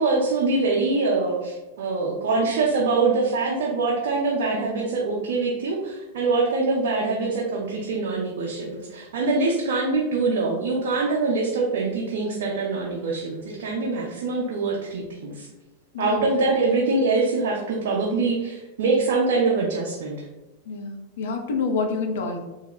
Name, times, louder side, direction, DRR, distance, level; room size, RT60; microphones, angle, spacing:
voice 1, 0.0-15.5 16.0-20.2, right 3 dB, 55° right, -3 dB, 0.5 m, -24 dB
voice 2, 15.9-16.2 20.7-22.4, left 4 dB, 60° left, 4 dB, 0.5 m, -27 dB
2.8 x 2.2 x 3.7 m, 1.1 s
figure-of-eight pair, 90°, 0 cm